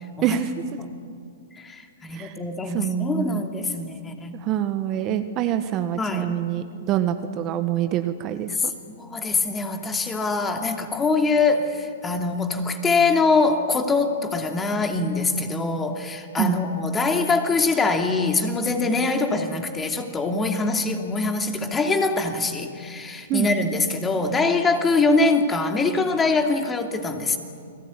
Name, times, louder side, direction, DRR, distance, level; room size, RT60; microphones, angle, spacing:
voice 1, 0.2-0.5 2.1-2.4 2.7-3.4 4.4-8.5 16.4-16.5 23.3-23.5, right 11 dB, 30° right, 9 dB, 1.3 m, -25 dB
voice 2, 1.6-4.3 6.0-6.3 8.6-27.4, left 3 dB, 15° left, 5 dB, 2.6 m, -23 dB
29.0 x 20.0 x 9.7 m, 2.3 s
hypercardioid pair, 140°, 0 cm